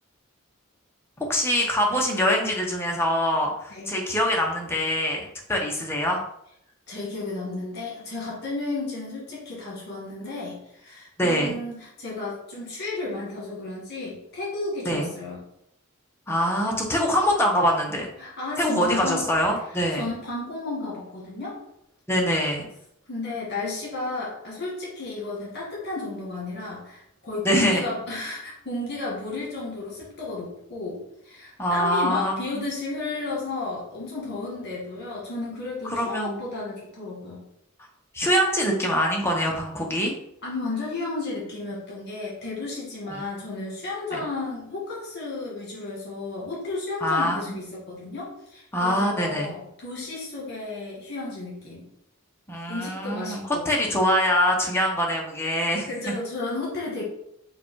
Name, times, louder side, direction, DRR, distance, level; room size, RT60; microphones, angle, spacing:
voice 1, 1.2-5.2 5.5-6.2 11.2-11.5 14.9-15.1 16.3-18.1 18.6-20.1 22.1-22.7 27.4-27.8 31.6-32.6 35.9-36.4 38.1-40.1 43.1-43.2 44.1-44.2 47.0-47.5 48.7-49.5 52.5-56.1, equal, 10° left, 0 dB, 0.8 m, -24 dB
voice 2, 6.9-15.4 18.2-19.3 19.7-21.6 23.1-37.4 40.4-51.9 52.7-53.7 55.9-57.0, left 3 dB, 50° left, -4 dB, 1.4 m, -33 dB
4.7 x 2.3 x 4.6 m, 0.76 s
head